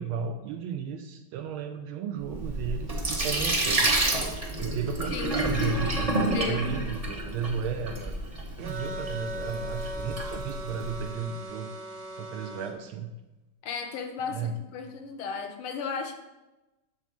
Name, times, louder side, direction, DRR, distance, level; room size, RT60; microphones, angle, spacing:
voice 1, 0.0-3.9 4.6-8.2 8.6-11.7 12.2-13.1 14.3-14.6, right 6 dB, 80° right, 5 dB, 1.4 m, -34 dB
Sink (filling or washing), 2.2-11.0, right 1 dB, 30° right, 0.6 m, -29 dB
voice 2, 5.1-5.4 6.3-6.9 13.6-16.1, left 6 dB, 80° left, 5 dB, 1.7 m, -35 dB
sound 1, 8.6-12.7, right 1 dB, 55° right, 1.5 m, -38 dB
8.2 x 3.8 x 6.0 m, 1.0 s
omnidirectional pair, 2.3 m